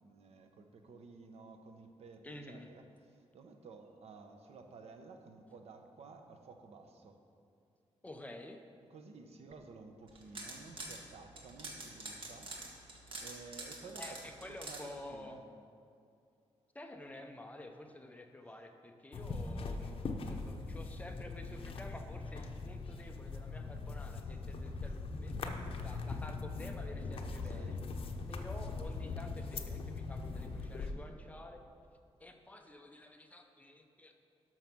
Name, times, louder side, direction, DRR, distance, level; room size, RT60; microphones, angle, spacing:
voice 1, 0.0-7.2 8.9-12.6 13.2-15.4 27.4-27.8, right 4 dB, 75° right, 5 dB, 1.0 m, -53 dB
voice 2, 2.2-2.7 8.0-8.6 14.0-15.4 16.7-19.9 20.3-25.5 25.8-27.8 28.3-31.6 32.2-34.2, left 1 dB, 15° left, 4 dB, 0.7 m, -50 dB
sound 1, 10.1-11.0 11.4-14.8, right 2 dB, 55° right, 1.7 m, -45 dB
sound 2, 19.1-30.9, left 3 dB, 55° left, 0.8 m, -41 dB
12.5 x 5.9 x 6.1 m, 2.4 s
wide cardioid pair, 165°, 11 cm